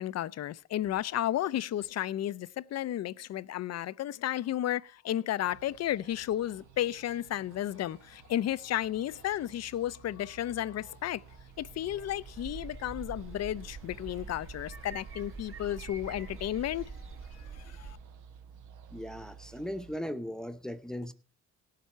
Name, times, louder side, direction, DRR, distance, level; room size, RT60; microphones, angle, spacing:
voice 1, 0.0-11.2 11.6-17.1 17.4-18.0, left 12 dB, 60° left, 0.6 m, -33 dB
sound 1, 5.4-20.0, right 6 dB, 80° right, 1.0 m, -53 dB
sound 2, 11.2-17.9, right 5 dB, 45° right, 1.2 m, -46 dB
voice 2, 18.9-21.1, equal, ahead, 0.8 m, -38 dB
17.5 x 7.5 x 4.4 m
cardioid pair, 90°, 30 cm